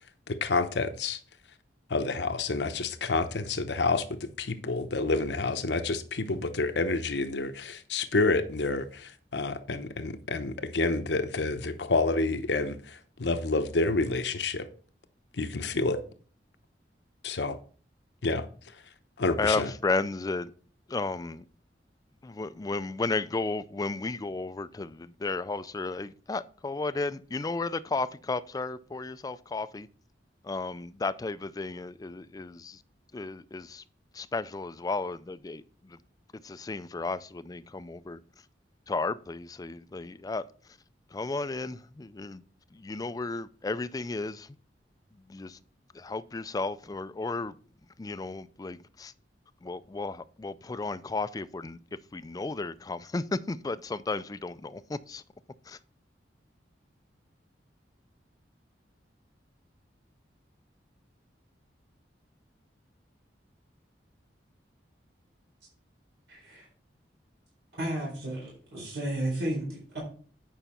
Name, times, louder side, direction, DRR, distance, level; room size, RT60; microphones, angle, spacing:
voice 1, 0.3-1.2 1.9-14.7 15.4-16.0 17.2-17.6 18.2-18.5 19.2-19.7, left 3 dB, 75° left, 0.8 m, -29 dB
voice 2, 19.4-20.5 20.9-21.4 22.2-29.9 30.4-32.8 33.1-33.8 34.1-36.0 36.4-38.2 38.9-40.5 41.1-42.4 42.7-44.6 45.3-45.6 45.9-47.6 48.0-49.1 49.6-55.2 55.7-55.8, left 3 dB, 20° left, 0.3 m, -33 dB
voice 3, 66.3-66.7 67.8-70.0, right 1 dB, 85° right, 4.3 m, -33 dB
9.2 x 5.5 x 4.2 m
head